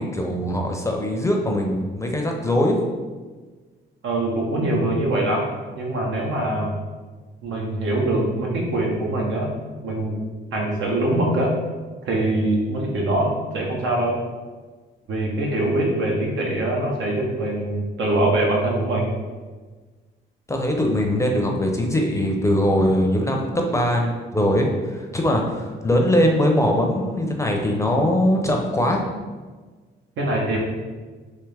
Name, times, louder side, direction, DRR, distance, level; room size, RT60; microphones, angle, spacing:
voice 1, 0.0-2.8 20.5-29.1, left 1 dB, 15° left, 1 dB, 0.5 m, -21 dB
voice 2, 4.0-5.5 5.8-6.8 7.4-9.5 9.8-10.2 10.5-11.5 12.0-14.2 15.1-19.1 30.2-30.6, right 1 dB, 75° right, -1 dB, 0.9 m, -23 dB
3.4 x 2.8 x 3.3 m, 1.4 s
cardioid pair, 90°, 20 cm